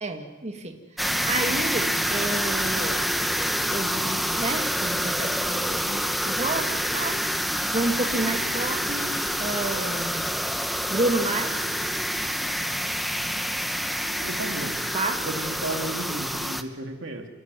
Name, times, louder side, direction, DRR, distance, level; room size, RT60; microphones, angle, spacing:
voice 1, 0.0-0.8 1.3-3.0 3.7-6.7 6.9-10.3 10.9-11.6 14.9-15.2, right 2 dB, 35° right, 4 dB, 2.0 m, -30 dB
sound 1, 1.0-16.6, equal, ahead, 0.8 m, -27 dB
voice 2, 14.2-14.9 15.2-17.3, right 2 dB, 65° right, 4 dB, 2.6 m, -33 dB
28.5 x 12.5 x 9.6 m, 1.2 s
head